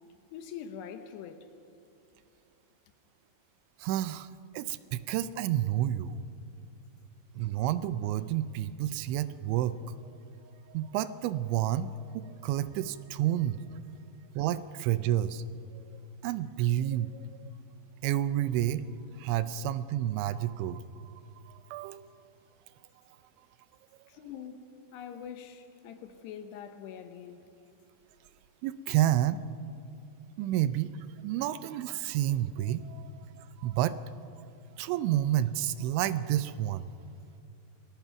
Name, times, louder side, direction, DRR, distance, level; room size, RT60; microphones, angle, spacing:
voice 1, 0.3-1.5 24.1-27.4, left 8 dB, 75° left, 2.8 m, -44 dB
voice 2, 3.8-4.3 4.5-6.2 7.4-10.0 10.4-13.6 14.4-15.4 15.7-15.8 16.2-17.5 18.0-18.8 19.2-21.1 21.4-22.1 28.6-29.4 30.4-30.9 31.2-34.5 34.8-36.9, right 12 dB, 85° right, 3.0 m, -30 dB
28.0 x 18.5 x 5.9 m
omnidirectional pair, 5.3 m